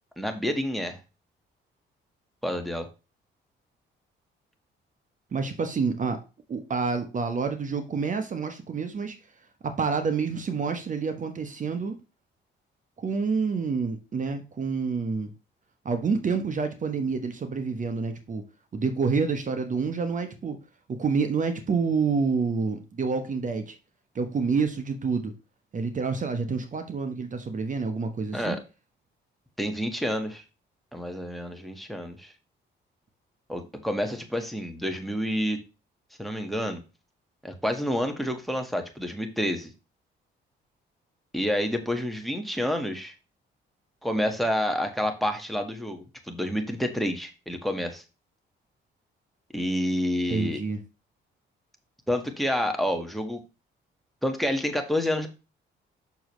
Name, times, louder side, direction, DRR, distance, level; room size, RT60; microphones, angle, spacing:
voice 1, 0.2-1.0 2.4-2.9 28.3-28.6 29.6-30.4 30.9-32.3 33.5-35.6 36.2-36.8 37.4-39.7 41.3-43.1 44.0-48.0 49.5-50.6 52.1-53.4 54.2-55.3, equal, ahead, 1.6 m, -28 dB
voice 2, 5.3-6.2 6.5-9.2 9.6-11.9 13.0-15.3 15.8-18.4 18.7-20.6 20.9-23.7 24.1-25.3 25.7-28.6 50.3-50.8, right 5 dB, 40° right, 1.1 m, -28 dB
7.1 x 6.3 x 3.1 m
cardioid pair, 90°, 20 cm